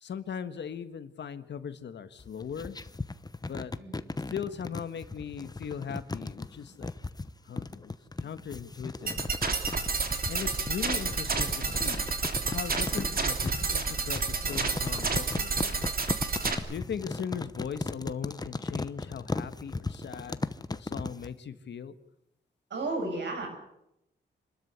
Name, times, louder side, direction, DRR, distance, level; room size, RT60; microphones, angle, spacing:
voice 1, 0.0-2.8 3.4-3.7 4.3-6.9 7.5-7.9 8.2-9.2 10.3-12.0 12.5-15.8 16.7-20.4 20.7-21.9, left 7 dB, 75° left, 11 dB, 1.6 m, -39 dB
sound 1, 2.2-21.3, left 3 dB, 20° left, 1.0 m, -37 dB
sound 2, 9.1-16.6, right 4 dB, 55° right, 3.0 m, -30 dB
voice 2, 22.7-23.5, right 2 dB, 75° right, 3 dB, 7.8 m, -33 dB
26.5 x 13.0 x 9.5 m, 0.84 s
cardioid pair, 80°, 18 cm